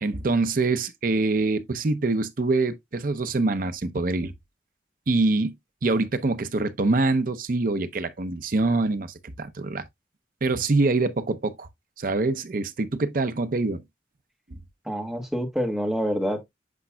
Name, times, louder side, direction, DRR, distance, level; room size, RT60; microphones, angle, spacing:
voice 1, 0.0-4.3 5.1-5.5 5.8-9.8 10.4-11.7 12.0-13.8, right 3 dB, 50° right, 0.6 m, -25 dB
voice 2, 14.8-16.5, equal, 5° right, 1.4 m, -27 dB
8.4 x 5.3 x 2.2 m
head